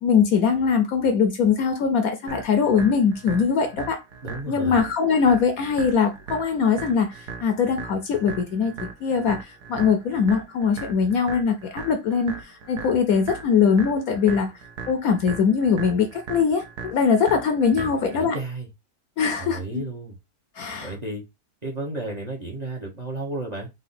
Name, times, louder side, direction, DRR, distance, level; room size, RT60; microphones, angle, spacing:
voice 1, 0.0-4.0 4.5-14.5 14.9-18.4 19.2-19.8 20.6-20.9, left 6 dB, 65° left, 1.0 m, -22 dB
sound 1, 2.3-18.3, right 5 dB, 70° right, 1.4 m, -39 dB
voice 2, 4.2-4.8 17.7-18.7 19.4-20.2 20.8-21.2 21.6-23.7, right 2 dB, 30° right, 1.0 m, -33 dB
3.9 x 2.8 x 4.2 m
omnidirectional pair, 1.8 m